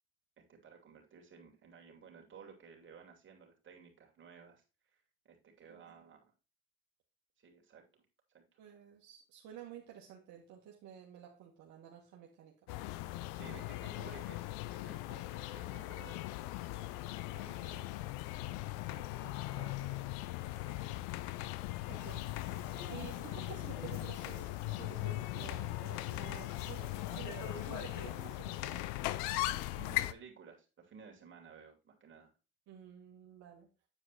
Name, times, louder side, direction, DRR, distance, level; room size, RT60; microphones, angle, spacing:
voice 1, 0.4-6.3 7.4-8.0 8.3-8.6 13.3-16.4 16.8-18.1 18.9-21.0 29.7-32.3, right 5 dB, 40° right, 2 dB, 2.9 m, -56 dB
voice 2, 5.7-6.1 8.6-12.5 13.4-13.6 21.9-22.6 22.9-28.9 32.7-33.7, right 10 dB, 70° right, -1 dB, 1.7 m, -52 dB
sound 1, 12.7-30.1, left 17 dB, 85° left, 0.6 m, -39 dB
sound 2, 22.0-28.3, left 5 dB, 70° left, 1.9 m, -49 dB
8.8 x 4.8 x 4.2 m, 0.31 s
supercardioid pair, 85°, 30 cm